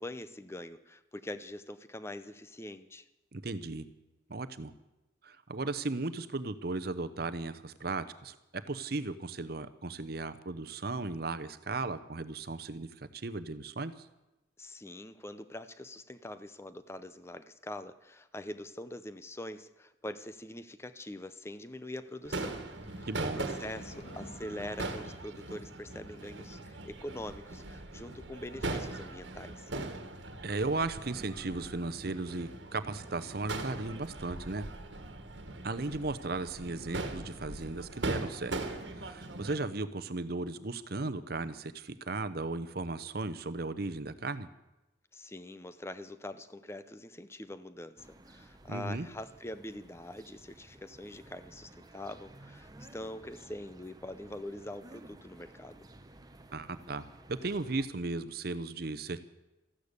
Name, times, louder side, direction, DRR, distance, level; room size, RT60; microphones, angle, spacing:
voice 1, 0.0-3.1 14.6-22.6 23.0-29.7 45.1-55.9, left 1 dB, 15° left, 12 dB, 0.6 m, -44 dB
voice 2, 3.3-3.9 4.3-4.7 5.2-8.4 8.7-14.1 23.1-23.4 30.4-34.7 35.6-38.6 38.9-44.5 48.7-49.1 56.5-59.2, right 3 dB, 55° right, 12 dB, 0.8 m, -36 dB
sound 1, 22.1-26.4, left 1 dB, 65° left, 1.8 m, -54 dB
Crowd / Fireworks, 22.3-39.5, right 2 dB, 75° right, 1.6 m, -40 dB
sound 2, 48.0-57.9, right 1 dB, 20° right, 0.9 m, -55 dB
14.0 x 12.0 x 8.2 m, 0.98 s
head